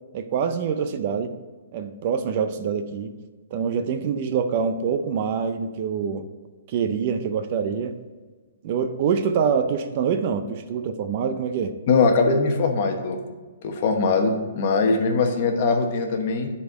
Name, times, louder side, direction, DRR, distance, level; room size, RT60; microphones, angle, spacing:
voice 1, 0.1-1.3 1.7-3.1 3.5-6.3 6.7-7.9 8.6-11.7, right 6 dB, 35° right, 9 dB, 0.4 m, -25 dB
voice 2, 11.9-13.2 13.6-16.5, left 4 dB, 40° left, 4 dB, 1.1 m, -21 dB
9.7 x 4.2 x 5.2 m, 1.4 s
hypercardioid pair, 170°, 0 cm